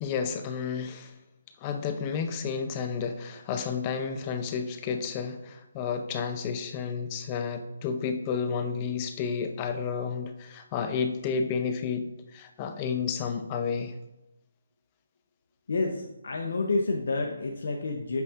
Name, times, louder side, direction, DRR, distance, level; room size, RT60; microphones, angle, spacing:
voice 1, 0.0-1.1 1.6-13.9, left 6 dB, 25° left, 8 dB, 0.5 m, -31 dB
voice 2, 15.7-18.2, left 3 dB, 65° left, 2 dB, 0.7 m, -29 dB
8.1 x 5.6 x 2.5 m, 0.94 s
hypercardioid pair, 160°, 0 cm